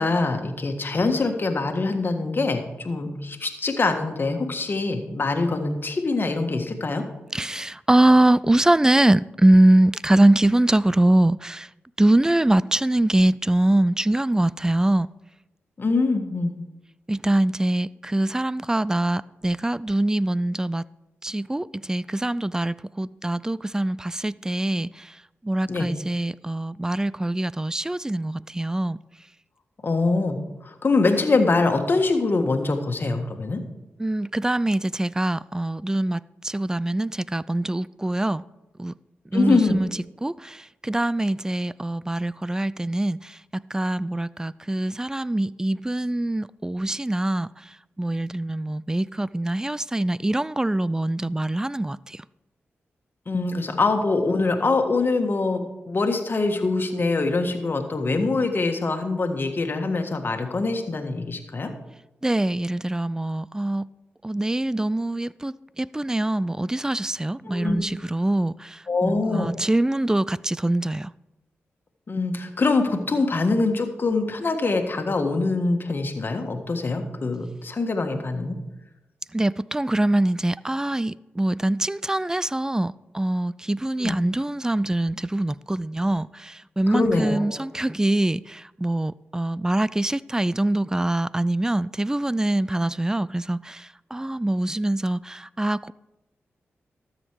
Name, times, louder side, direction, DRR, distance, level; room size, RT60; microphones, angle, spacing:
voice 1, 0.0-7.0 15.8-16.5 25.7-25.9 29.8-33.6 39.3-39.8 53.3-61.7 67.4-67.8 68.9-69.5 72.1-78.6 84.0-84.1 86.9-87.6, left 3 dB, 50° left, 1.6 m, -24 dB
voice 2, 7.3-11.7 12.0-15.1 17.1-20.8 21.2-25.2 25.4-29.0 34.0-38.4 38.8-38.9 39.3-39.9 40.2-52.2 62.2-63.9 64.2-71.1 79.3-95.9, right 1 dB, 15° right, 0.3 m, -23 dB
13.0 x 7.4 x 4.7 m
cardioid pair, 50°, 5 cm